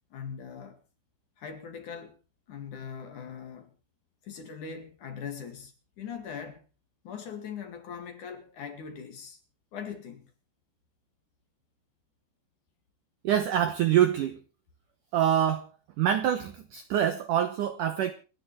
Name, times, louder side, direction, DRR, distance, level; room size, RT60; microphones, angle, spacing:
voice 1, 0.1-0.8 1.4-2.2 2.5-3.7 4.2-6.6 7.0-9.4 9.7-10.3, left 7 dB, 50° left, 3.1 m, -41 dB
voice 2, 13.2-14.4 15.1-15.7 16.0-18.1, right 10 dB, 75° right, 1.9 m, -25 dB
28.0 x 10.5 x 3.2 m
omnidirectional pair, 5.0 m